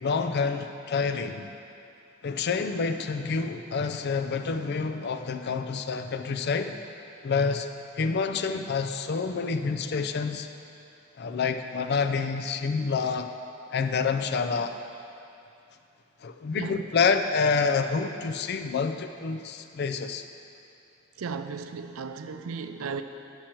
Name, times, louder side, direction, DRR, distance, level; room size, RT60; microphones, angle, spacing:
voice 1, 0.0-1.5 2.2-6.8 7.2-7.7 8.0-10.5 11.2-13.3 13.7-14.8 16.2-20.2, left 5 dB, 50° left, 8 dB, 0.4 m, -28 dB
voice 2, 21.2-23.0, right 5 dB, 85° right, 9 dB, 0.5 m, -35 dB
10.5 x 6.2 x 4.4 m, 2.6 s
head